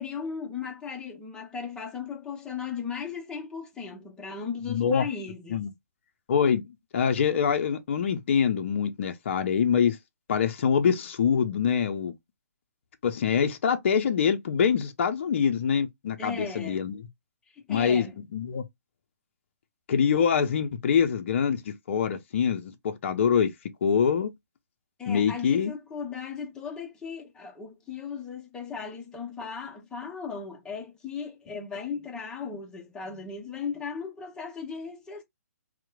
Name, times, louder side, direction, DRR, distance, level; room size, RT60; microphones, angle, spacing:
voice 1, 0.0-5.7 16.2-16.9 17.5-18.2 25.0-35.2, left 6 dB, 10° left, 0.6 m, -37 dB
voice 2, 4.7-5.0 5.5-5.7 6.3-6.6 6.9-10.0 10.3-12.1 13.0-17.0 17.7-18.1 18.3-18.6 19.9-23.5 23.8-24.3 25.1-25.7, left 7 dB, 50° left, 0.5 m, -24 dB
2.9 x 2.1 x 2.2 m
figure-of-eight pair, 130°, 8 cm